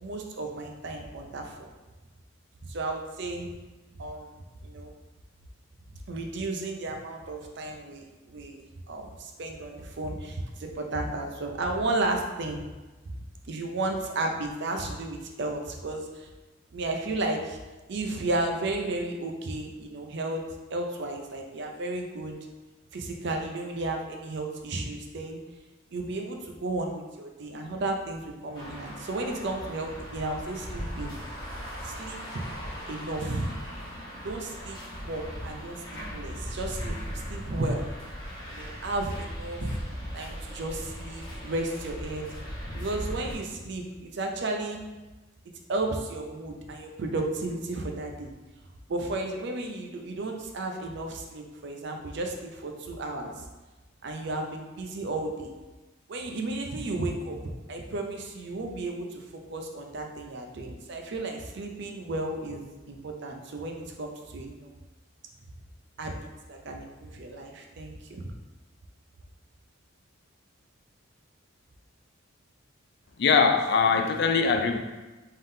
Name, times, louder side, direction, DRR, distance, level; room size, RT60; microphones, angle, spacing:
voice 1, 0.0-1.7 2.6-3.5 3.9-4.3 4.6-4.9 6.1-12.6 13.5-16.3 16.7-17.6 17.9-20.4 20.7-22.4 22.9-25.4 25.9-31.1 31.8-32.2 32.9-33.5 34.2-37.9 38.5-39.8 40.1-42.3 42.7-44.8 45.7-48.3 48.9-53.4 54.0-55.5 56.1-57.4 57.7-62.6 62.9-64.7 66.0-66.2 66.5-68.2, right 2 dB, 55° right, 2 dB, 0.5 m, -33 dB
sound 1, 28.5-43.3, equal, 20° left, 1.1 m, -38 dB
voice 2, 73.2-74.8, left 5 dB, 55° left, 5 dB, 0.3 m, -22 dB
3.7 x 3.6 x 2.6 m, 1.2 s
head